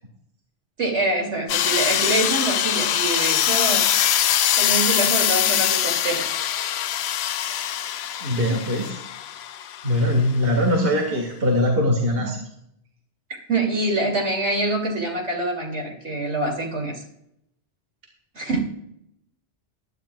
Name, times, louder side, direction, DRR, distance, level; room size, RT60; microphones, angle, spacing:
voice 1, 0.8-3.8 4.3-6.3 13.5-17.0 18.3-18.6, right 2 dB, 70° right, 0 dB, 3.1 m, -25 dB
sound 1, 1.5-10.1, left 10 dB, 70° left, 0.8 m, -23 dB
voice 2, 8.2-9.0 9.8-12.4, left 1 dB, 55° right, 1 dB, 2.1 m, -21 dB
20.0 x 10.5 x 2.4 m, 0.77 s
omnidirectional pair, 1.2 m